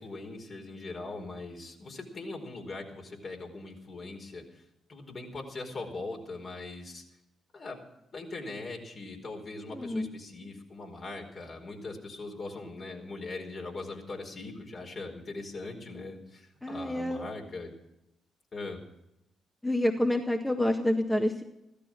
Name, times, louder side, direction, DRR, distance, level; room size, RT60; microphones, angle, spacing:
voice 1, 0.0-4.6 4.9-7.0 7.5-7.8 8.1-17.7 18.5-18.8, left 3 dB, 50° left, 1 dB, 4.6 m, -41 dB
voice 2, 9.7-10.1 16.6-17.3 19.6-21.4, left 1 dB, 10° left, 3 dB, 1.7 m, -28 dB
15.5 x 13.5 x 6.1 m, 0.85 s
hypercardioid pair, 45°, 0 cm